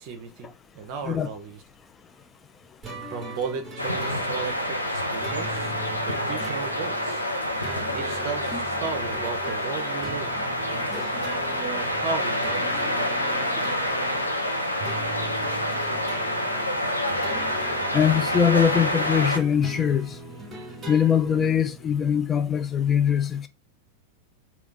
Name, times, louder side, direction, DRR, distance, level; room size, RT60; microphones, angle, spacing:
voice 1, 0.0-1.6 3.1-7.2 7.9-10.3 10.7-11.1 11.6-13.1, right 5 dB, 45° right, 0.6 m, -35 dB
sound 1, 2.8-22.0, right 2 dB, 20° right, 1.0 m, -40 dB
sound 2, 3.8-19.4, left 1 dB, 85° left, 0.6 m, -27 dB
voice 2, 17.9-20.2 20.9-23.5, left 8 dB, 20° left, 0.4 m, -22 dB
3.5 x 2.3 x 3.6 m
figure-of-eight pair, 90°, 0 cm